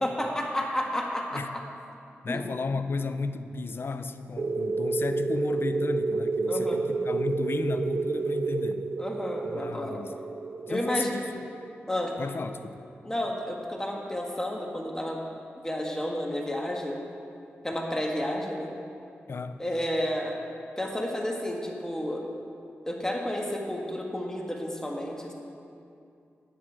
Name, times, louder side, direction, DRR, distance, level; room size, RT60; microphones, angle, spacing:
voice 1, 0.0-1.4 2.3-2.4 6.5-6.8 9.0-10.0 10.7-11.1 11.9-12.1 13.0-15.2 15.6-17.0 17.6-18.7 19.6-20.4 20.8-22.2 22.9-25.3, left 1 dB, 10° left, 0 dB, 1.7 m, -31 dB
voice 2, 2.2-8.8 9.4-10.1 10.7-11.4 12.2-12.8 19.3-19.6, left 4 dB, 55° left, 10 dB, 0.6 m, -33 dB
sound 1, 4.4-12.7, right 3 dB, 55° right, 0.4 m, -30 dB
10.0 x 9.5 x 4.8 m, 2.5 s
cardioid pair, 50°, 5 cm